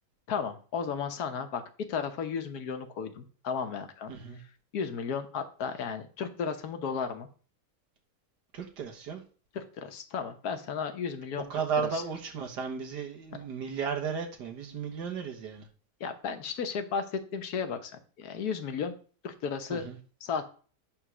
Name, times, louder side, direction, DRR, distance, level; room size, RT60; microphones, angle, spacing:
voice 1, 0.3-4.1 4.7-7.3 9.5-11.4 11.9-12.0 16.0-17.9 18.2-18.9 19.2-19.8 20.2-20.5, left 6 dB, 70° left, 7 dB, 1.5 m, -34 dB
voice 2, 4.1-4.4 8.5-9.2 11.5-15.7 19.7-20.0, right 6 dB, 90° right, 2 dB, 1.9 m, -34 dB
9.0 x 3.7 x 6.1 m, 0.40 s
omnidirectional pair, 1.7 m